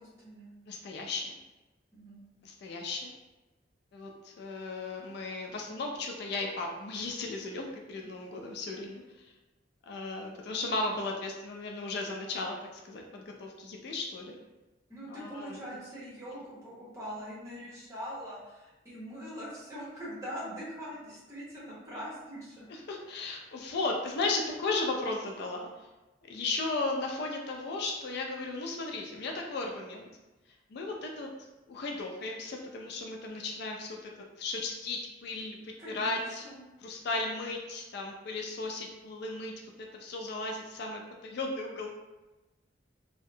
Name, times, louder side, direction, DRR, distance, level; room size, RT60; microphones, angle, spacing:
voice 1, 0.0-0.5 1.9-2.2 14.9-22.6 35.8-36.6, equal, 15° right, -8 dB, 1.0 m, -42 dB
voice 2, 0.7-1.4 2.4-3.1 3.9-9.3 9.8-12.6 12.8-14.3 15.1-15.8 22.7-25.9 26.2-30.1 30.7-31.3 31.7-34.1 34.4-36.5 36.8-39.5 39.8-41.9, left 3 dB, 65° left, 1 dB, 0.4 m, -35 dB
2.7 x 2.1 x 2.6 m, 1.1 s
head